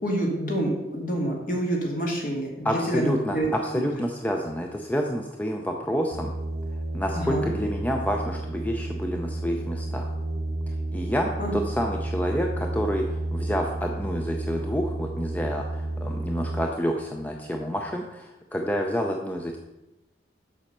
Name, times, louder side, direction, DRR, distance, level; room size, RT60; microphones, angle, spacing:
voice 1, 0.0-3.5 7.1-7.5 11.4-11.5, right 1 dB, 50° left, 0 dB, 2.0 m, -27 dB
voice 2, 2.6-6.4 6.9-10.1 10.9-19.6, equal, 10° left, 2 dB, 0.5 m, -28 dB
sound 1, 6.1-16.7, right 2 dB, 70° right, 0.7 m, -31 dB
7.4 x 5.5 x 6.6 m, 0.98 s
head